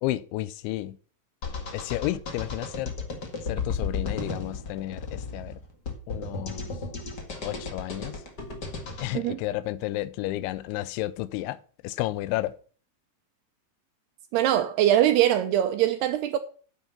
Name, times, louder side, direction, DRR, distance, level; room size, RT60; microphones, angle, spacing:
voice 1, 0.0-1.0 1.7-2.9 3.4-5.6 6.1-6.7 7.4-8.2 9.0-12.6, left 16 dB, 90° left, 3.0 m, -32 dB
sound 1, 1.4-9.1, left 4 dB, 50° left, 1.2 m, -34 dB
voice 2, 14.3-16.4, right 12 dB, 80° right, 2.4 m, -22 dB
9.1 x 8.4 x 5.6 m
omnidirectional pair, 5.3 m